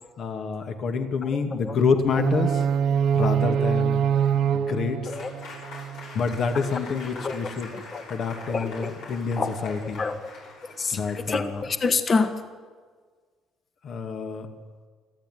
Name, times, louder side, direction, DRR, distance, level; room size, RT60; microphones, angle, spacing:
voice 1, 0.2-2.6 3.1-4.0 4.5-5.1 6.1-7.7 8.1-10.0 10.9-11.6 13.8-14.5, left 5 dB, 55° left, 6 dB, 2.5 m, -27 dB
voice 2, 1.2-1.8 5.1-5.3 7.1-8.0 8.5-8.9 9.4-10.2 10.8-12.3, left 4 dB, 35° left, 8 dB, 1.9 m, -28 dB
sound 1, 2.2-6.2, right 8 dB, 65° right, 0.9 m, -24 dB
Applause / Crowd, 5.0-11.9, left 3 dB, 75° left, 7.2 m, -44 dB
24.0 x 14.5 x 9.5 m, 1.5 s
cardioid pair, 95°, 0 cm